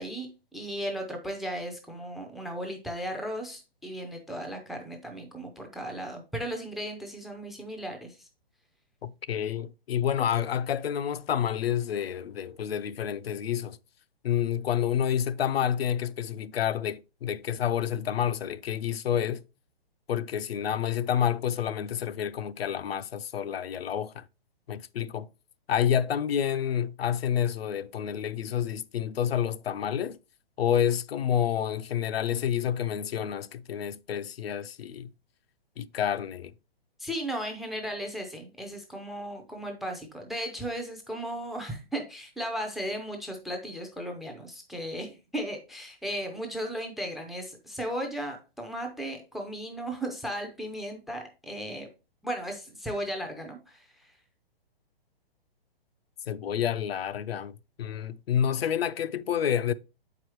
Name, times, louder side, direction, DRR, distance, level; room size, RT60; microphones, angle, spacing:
voice 1, 0.0-8.3 37.0-51.9 52.2-54.1, equal, ahead, 0.4 m, -36 dB
voice 2, 9.0-13.8 14.2-19.4 20.1-24.2 24.7-25.3 25.7-30.2 30.6-35.1 35.8-36.5 56.3-59.7, left 9 dB, 85° left, 0.5 m, -29 dB
7.0 x 4.9 x 3.0 m
hypercardioid pair, 140°, 30 cm